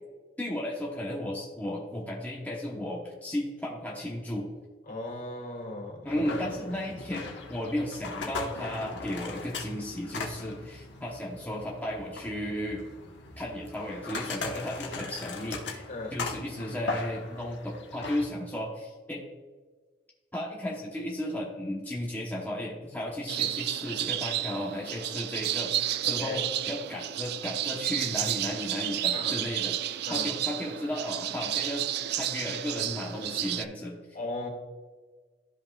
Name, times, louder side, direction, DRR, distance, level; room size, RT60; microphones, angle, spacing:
voice 1, 0.4-4.5 6.0-12.8 13.4-15.8 16.1-19.2 20.3-31.8 32.2-34.0, left 1 dB, 10° left, -3 dB, 0.9 m, -34 dB
voice 2, 4.9-6.7 15.9-16.2 26.0-26.4 29.1-29.4 30.0-30.3 34.1-34.5, left 2 dB, 50° left, -1 dB, 2.3 m, -37 dB
sound 1, 6.1-18.3, left 3 dB, 75° left, 1.2 m, -39 dB
sound 2, 23.3-33.6, right 12 dB, 65° right, 0.3 m, -31 dB
13.0 x 5.4 x 2.3 m, 1.4 s
head